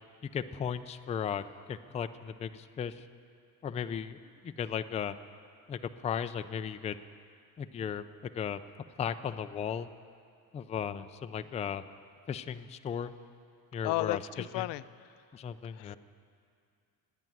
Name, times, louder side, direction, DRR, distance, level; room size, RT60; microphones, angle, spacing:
voice 1, 0.2-3.1 3.6-5.2 5.7-7.0 7.6-8.6 9.0-9.9 10.5-11.8 12.3-13.1 13.7-14.7 15.3-16.0, left 8 dB, 20° left, 10 dB, 0.3 m, -36 dB
voice 2, 13.8-14.8 15.8-16.0, left 18 dB, 85° left, 17 dB, 0.5 m, -33 dB
16.5 x 8.9 x 9.2 m, 2.3 s
cardioid pair, 135°, 40 cm